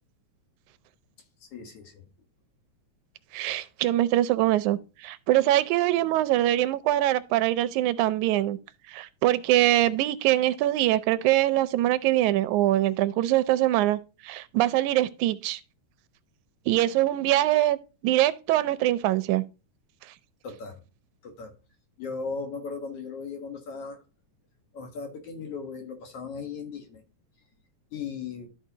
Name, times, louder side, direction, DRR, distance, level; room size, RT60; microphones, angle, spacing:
voice 1, 1.4-2.0 3.5-3.6 20.4-20.8 21.2-21.5 22.0-24.0 24.7-27.0 27.9-28.5, left 5 dB, 60° left, 2.2 m, -37 dB
voice 2, 3.3-8.6 8.9-15.6 16.7-17.8 18.0-19.4, right 14 dB, 90° right, 2.0 m, -23 dB
13.0 x 4.8 x 2.8 m
omnidirectional pair, 3.3 m